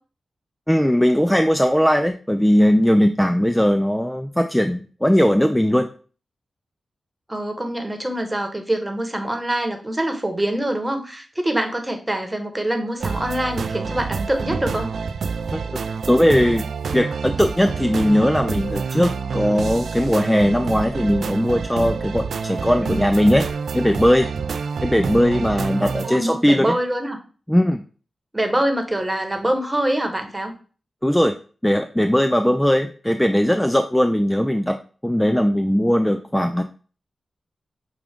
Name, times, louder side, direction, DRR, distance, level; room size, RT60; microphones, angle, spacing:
voice 1, 0.7-5.9 15.5-15.8 16.1-16.7 16.9-23.5 23.7-24.3 24.8-26.7 27.5-27.8 31.0-31.4 31.6-34.8 35.0-36.6, equal, 5° left, 7 dB, 0.4 m, -19 dB
voice 2, 7.3-14.9 22.8-23.2 26.0-27.2 28.3-30.5, right 1 dB, 15° right, 5 dB, 1.1 m, -24 dB
sound 1, 13.0-26.1, right 5 dB, 80° right, 0.3 m, -28 dB
6.1 x 2.4 x 3.5 m, 0.38 s
cardioid pair, 45°, 0 cm